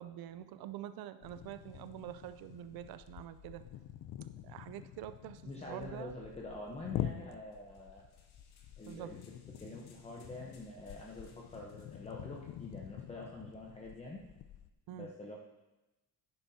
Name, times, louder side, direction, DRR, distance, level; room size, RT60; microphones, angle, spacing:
voice 1, 0.0-3.6 4.4-6.2 8.9-9.1 14.9-15.1, right 12 dB, 65° right, 12 dB, 0.6 m, -46 dB
sound 1, 1.2-14.7, left 11 dB, 55° left, 0.5 m, -46 dB
voice 2, 5.4-8.0 8.8-9.2 9.6-14.2 14.9-15.3, left 2 dB, 15° left, -2 dB, 0.8 m, -46 dB
sound 2, 7.5-12.9, left 5 dB, 70° left, 1.4 m, -68 dB
10.5 x 9.7 x 2.8 m, 1.0 s
cardioid pair, 145°, 39 cm